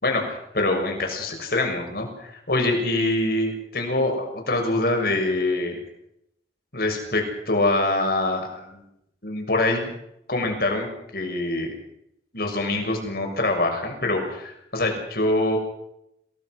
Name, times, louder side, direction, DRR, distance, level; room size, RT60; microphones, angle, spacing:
voice 1, 0.0-5.8 6.7-8.8 9.2-9.9 10.3-11.7 12.3-15.6, left 2 dB, 60° left, 3 dB, 6.8 m, -24 dB
28.5 x 19.0 x 6.4 m, 0.78 s
head